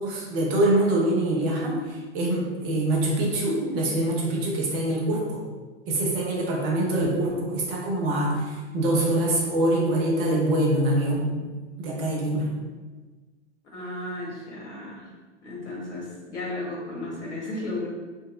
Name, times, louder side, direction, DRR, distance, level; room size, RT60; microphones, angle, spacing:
voice 1, 0.0-5.4 5.9-11.3 11.8-12.5, right 1 dB, 30° right, -2 dB, 0.7 m, -24 dB
voice 2, 13.7-15.1 15.4-17.9, left 2 dB, 75° left, -4 dB, 1.2 m, -34 dB
2.8 x 2.6 x 2.4 m, 1.3 s
figure-of-eight pair, 110°, 36 cm